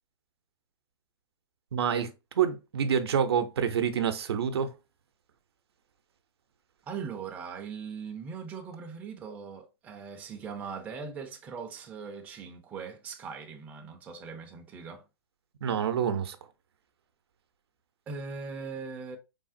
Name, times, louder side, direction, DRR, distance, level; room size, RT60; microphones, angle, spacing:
voice 1, 1.7-4.7 15.6-16.4, right 8 dB, 80° right, 0.6 m, -27 dB
voice 2, 6.9-15.0 18.1-19.2, right 5 dB, 10° right, 0.3 m, -40 dB
3.4 x 2.0 x 2.5 m
hypercardioid pair, 140°, 13 cm